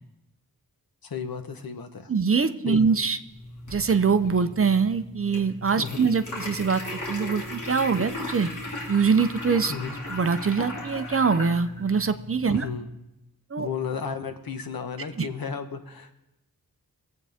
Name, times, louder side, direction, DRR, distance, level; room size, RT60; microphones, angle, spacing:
voice 1, 1.0-2.1 2.6-2.8 5.8-6.0 9.7-10.0 12.5-12.9 13.6-16.2, left 6 dB, 75° left, 7 dB, 1.2 m, -33 dB
voice 2, 2.1-3.2 3.7-8.5 8.9-9.7 10.1-12.7 13.5-13.7 15.2-15.3, right 5 dB, 40° right, 10 dB, 0.7 m, -23 dB
sound 1, 3.3-12.8, left 1 dB, 55° left, 2.9 m, -37 dB
23.5 x 8.5 x 3.6 m, 0.92 s
wide cardioid pair, 115°, 36 cm